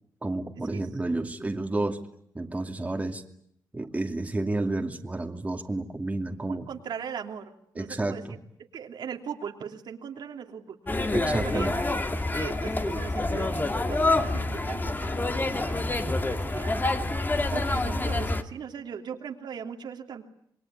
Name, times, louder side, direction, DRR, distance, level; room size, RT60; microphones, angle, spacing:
voice 1, 0.2-2.0 2.3-3.2 3.7-6.7 7.8-8.4 11.1-11.8, right 2 dB, 20° right, 3 dB, 2.6 m, -30 dB
voice 2, 6.4-8.4 8.7-10.8 11.2-11.8 12.3-16.8 17.5-20.2, right 7 dB, 75° right, 3 dB, 3.0 m, -39 dB
sound 1, 10.9-18.4, left 2 dB, 25° left, 2.3 m, -27 dB
27.5 x 22.0 x 9.7 m, 0.72 s
cardioid pair, 85°, 8 cm